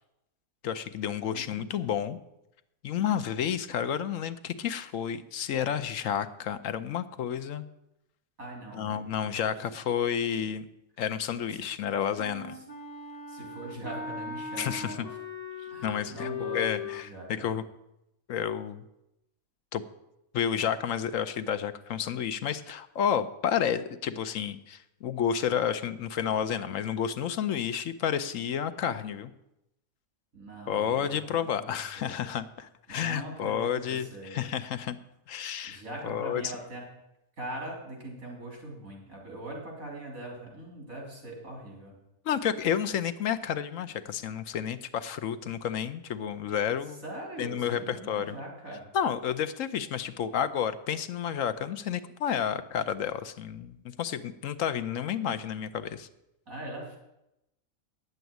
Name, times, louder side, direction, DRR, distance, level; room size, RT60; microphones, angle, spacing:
voice 1, 0.6-2.2 2.8-7.7 8.7-10.7 11.0-12.6 14.6-15.1 15.8-17.6 18.3-18.8 19.7-19.8 20.3-29.3 30.7-35.0 35.3-36.5 42.2-47.0 47.4-48.4 48.9-56.1, left 8 dB, 70° left, 11 dB, 1.0 m, -31 dB
voice 2, 1.3-1.9 8.4-9.5 13.3-15.1 15.7-17.5 30.3-32.2 32.9-34.4 35.7-36.8 37.4-41.9 47.0-48.8 56.5-57.0, right 1 dB, 70° right, -1 dB, 3.7 m, -41 dB
Wind instrument woodwind instrument, 12.2-17.0, left 5 dB, 30° left, 1.1 m, -38 dB
9.7 x 8.0 x 9.2 m, 0.87 s
omnidirectional pair, 1.5 m